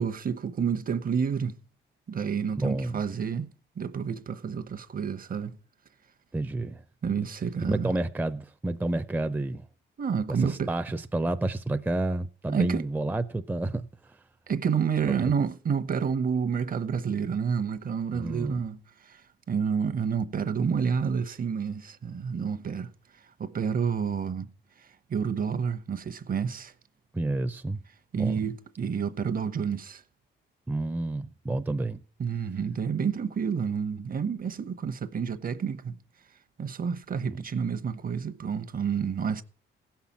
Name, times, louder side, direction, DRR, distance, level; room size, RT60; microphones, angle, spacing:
voice 1, 0.0-1.6 2.1-3.5 3.8-5.6 7.0-7.9 10.0-10.7 12.5-12.8 14.5-19.2 19.5-22.9 23.4-24.5 25.1-26.7 28.1-30.0 32.2-36.0 36.6-39.4, right 6 dB, 45° right, 1.0 m, -29 dB
voice 2, 2.6-3.0 6.3-6.8 7.7-9.7 10.3-14.2 15.2-15.3 18.1-18.6 27.1-27.8 28.2-28.4 30.7-32.0 37.3-37.4, right 2 dB, 10° right, 0.6 m, -30 dB
16.0 x 5.8 x 7.3 m
cardioid pair, 90°, 20 cm